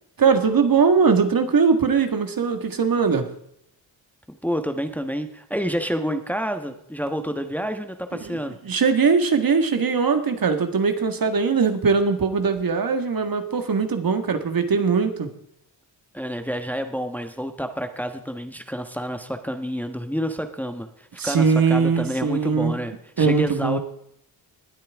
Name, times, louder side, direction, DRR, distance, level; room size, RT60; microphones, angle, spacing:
voice 1, 0.2-3.3 8.2-8.4 8.7-15.3 21.2-22.8 23.2-23.8, right 5 dB, 50° right, 7 dB, 1.8 m, -20 dB
voice 2, 4.3-8.6 16.1-23.8, equal, 5° left, 6 dB, 1.3 m, -29 dB
20.0 x 8.6 x 3.6 m, 0.73 s
supercardioid pair, 55°, 45 cm